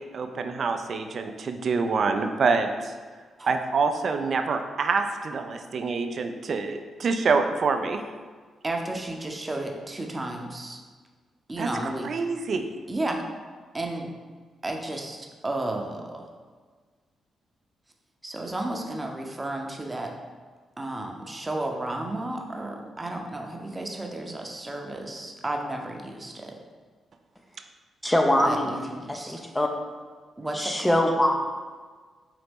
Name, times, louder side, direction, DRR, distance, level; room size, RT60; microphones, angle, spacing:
voice 1, 0.0-2.9 3.5-8.0 11.6-11.7 12.0-12.7, right 4 dB, 60° right, 6 dB, 0.3 m, -26 dB
voice 2, 8.6-10.8 11.5-12.1 12.9-13.3 13.7-14.1 14.6-16.3 18.2-20.1 20.8-26.6 28.4-29.4 30.4-31.0, right 1 dB, 25° right, 2 dB, 0.7 m, -33 dB
voice 3, 28.0-28.7 29.1-29.7 30.5-31.3, left 1 dB, 15° left, 2 dB, 0.5 m, -23 dB
4.0 x 2.8 x 3.5 m, 1.5 s
supercardioid pair, 50°, 0 cm